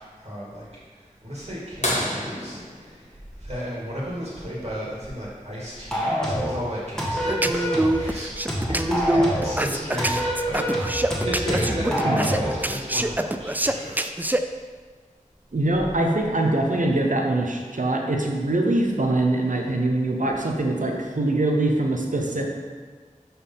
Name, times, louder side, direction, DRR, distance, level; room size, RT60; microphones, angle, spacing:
voice 1, 0.0-14.5, equal, 50° right, -7 dB, 2.0 m, -34 dB
sound 1, 1.8-4.3 6.2-6.3 8.5-8.6 10.3-10.6 11.4-11.5, left 1 dB, 55° left, 1.7 m, -30 dB
sound 2, 5.9-6.6 7.0-8.0 8.5-9.6 10.0-12.6, equal, 5° left, 1.6 m, -26 dB
sound 3, 7.3-14.4, right 1 dB, 15° right, 0.4 m, -25 dB
voice 2, 15.5-22.4, right 2 dB, 70° right, 1 dB, 0.9 m, -23 dB
5.5 x 4.4 x 5.6 m, 1.5 s
wide cardioid pair, 45°, 14 cm